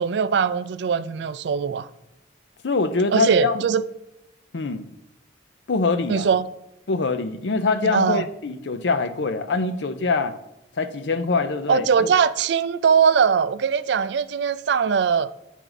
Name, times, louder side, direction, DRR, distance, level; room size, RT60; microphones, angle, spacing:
voice 1, 0.0-1.9 3.1-3.8 6.1-6.4 7.9-8.2 11.7-15.3, right 6 dB, 70° right, 0.3 m, -21 dB
voice 2, 2.6-3.7 4.5-4.9 5.7-6.3 6.9-10.4 10.8-12.1, left 3 dB, 75° left, 0.6 m, -24 dB
9.1 x 4.6 x 3.9 m
head